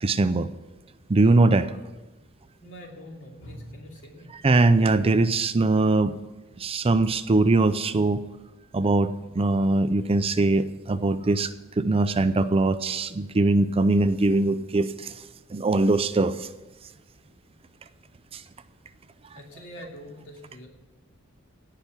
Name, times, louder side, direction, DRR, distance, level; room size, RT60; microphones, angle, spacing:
voice 1, 0.0-0.5 1.1-1.7 4.4-6.1 6.6-8.2 8.7-11.5 11.8-15.1 15.5-16.5, right 2 dB, 25° right, 12 dB, 0.5 m, -21 dB
voice 2, 2.6-4.3 19.3-20.7, equal, 65° left, 0 dB, 2.8 m, -43 dB
17.0 x 5.9 x 8.1 m, 1.1 s
head